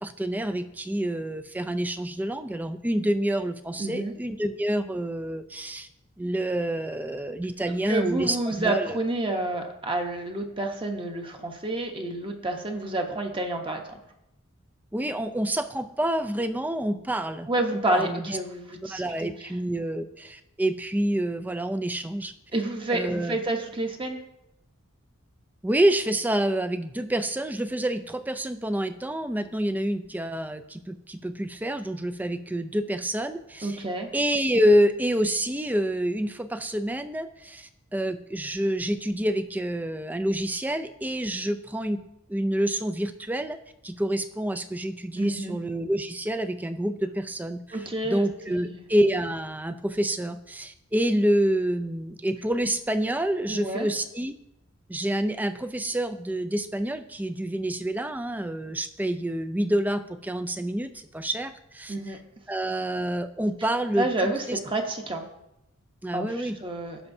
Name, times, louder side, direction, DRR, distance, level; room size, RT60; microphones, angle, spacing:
voice 1, 0.0-5.9 6.2-9.0 14.9-17.5 17.9-18.4 18.8-22.3 22.9-23.4 25.6-33.8 34.1-43.6 43.8-54.3 54.9-62.2 62.5-64.6 66.0-66.6, right 1 dB, 10° right, 9 dB, 0.4 m, -27 dB
voice 2, 3.8-4.1 7.7-14.0 17.5-19.0 22.5-24.2 33.6-34.1 45.2-45.6 47.7-48.8 53.5-53.9 61.9-62.2 64.0-65.2 66.1-67.0, right 2 dB, 25° right, 3 dB, 0.9 m, -29 dB
17.0 x 5.8 x 2.7 m, 0.86 s
head